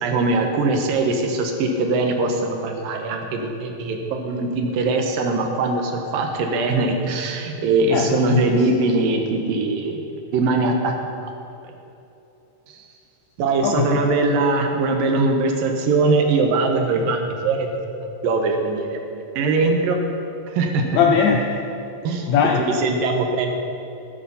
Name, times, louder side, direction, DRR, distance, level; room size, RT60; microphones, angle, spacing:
voice 1, 0.0-10.0 10.3-10.9 11.2-11.3 12.7-12.8 13.4-17.8 18.2-20.0 20.5-20.8 22.0-22.3 22.8-23.5, right 3 dB, 80° right, 3 dB, 2.9 m, -21 dB
voice 2, 7.9-8.7 13.6-14.0 20.9-21.6 22.3-22.8, left 6 dB, 80° left, 3 dB, 1.6 m, -20 dB
12.5 x 11.5 x 5.8 m, 2.9 s
omnidirectional pair, 4.0 m